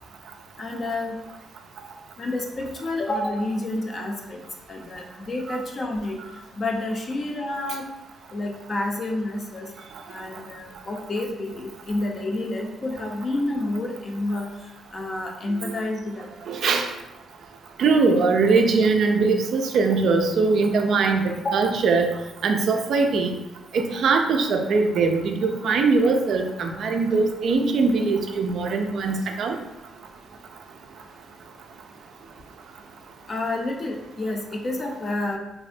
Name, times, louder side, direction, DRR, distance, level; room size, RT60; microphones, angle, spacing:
voice 1, 0.6-1.2 2.2-4.4 4.7-6.2 6.6-7.9 8.3-9.7 10.1-14.5 14.9-16.6 21.4-21.8 29.2-29.3 33.3-35.4, left 2 dB, 40° left, 1 dB, 0.5 m, -29 dB
voice 2, 16.5-16.9 17.8-22.1 22.4-23.3 23.7-29.6, right 4 dB, 65° right, 4 dB, 0.3 m, -21 dB
3.4 x 2.1 x 2.5 m, 1.0 s
cardioid pair, 90°, 0 cm